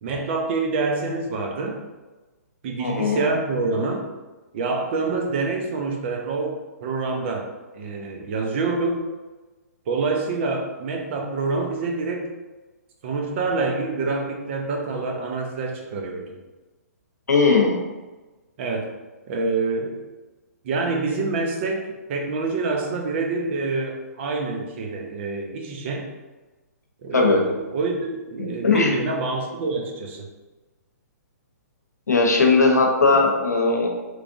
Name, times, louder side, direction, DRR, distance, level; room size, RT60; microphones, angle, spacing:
voice 1, 0.0-1.8 2.6-4.0 4.5-6.6 6.8-7.5 7.7-9.0 9.9-12.3 13.0-16.4 18.6-18.9 19.3-20.0 20.6-26.1 27.0-30.3, right 3 dB, 45° right, 2 dB, 0.7 m, -26 dB
voice 2, 2.8-3.3 17.3-17.8 27.1-27.4 28.4-28.9 32.1-33.9, left 3 dB, 85° left, 1 dB, 0.8 m, -18 dB
3.4 x 3.2 x 2.6 m, 1.2 s
hypercardioid pair, 130°, 9 cm